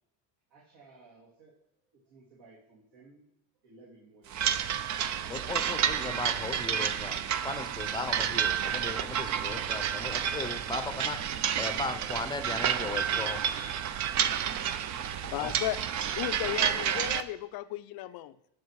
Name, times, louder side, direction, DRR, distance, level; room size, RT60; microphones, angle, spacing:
voice 1, 0.5-3.3 3.6-4.8 9.2-9.7 15.3-15.4 17.6-18.1, right 3 dB, 60° right, 2.8 m, -58 dB
sound 1, 4.3-17.2, right 9 dB, 35° right, 0.6 m, -30 dB
voice 2, 5.3-13.4 15.4-15.5, left 3 dB, 10° left, 0.7 m, -37 dB
voice 3, 15.3-15.8 16.1-18.3, left 15 dB, 50° left, 0.6 m, -34 dB
9.6 x 6.3 x 4.8 m
supercardioid pair, 105°, 50 cm